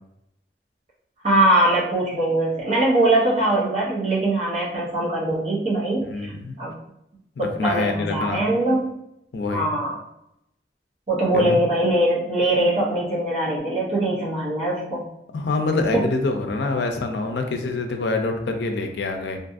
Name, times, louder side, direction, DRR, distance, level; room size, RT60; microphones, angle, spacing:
voice 1, 1.2-6.3 6.6-6.7 7.4-8.9 9.5-10.0 11.1-15.1 15.9-16.1, right 1 dB, 35° right, -6 dB, 0.6 m, -22 dB
voice 2, 6.1-6.6 7.4-8.4 9.3-9.7 11.3-11.6 15.3-19.4, left 3 dB, 70° left, 5 dB, 0.4 m, -25 dB
2.6 x 2.4 x 2.5 m, 0.81 s
head